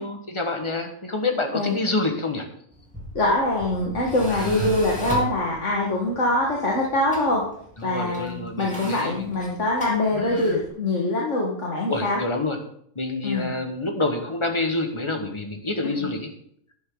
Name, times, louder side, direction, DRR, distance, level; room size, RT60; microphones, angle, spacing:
voice 1, 0.0-2.5 4.3-4.7 7.8-9.3 10.1-10.6 11.9-12.6 12.9-16.3, left 2 dB, 20° left, 4 dB, 1.5 m, -28 dB
Tools, 2.7-10.7, right 1 dB, 5° left, 2.9 m, -37 dB
voice 2, 3.2-7.4 7.8-12.2 13.2-13.5, left 2 dB, 55° left, -2 dB, 2.0 m, -23 dB
11.5 x 10.5 x 3.9 m, 0.67 s
omnidirectional pair, 1.5 m